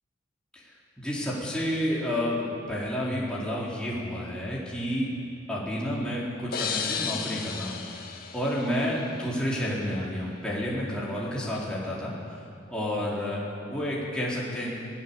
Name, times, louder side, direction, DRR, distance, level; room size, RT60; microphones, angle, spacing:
voice 1, 1.0-5.1 5.5-7.8 8.3-12.1 12.7-14.7, equal, 5° left, -7 dB, 4.1 m, -30 dB
sound 1, 6.5-9.3, left 6 dB, 50° left, 1.7 m, -34 dB
23.0 x 17.5 x 7.2 m, 2.6 s
head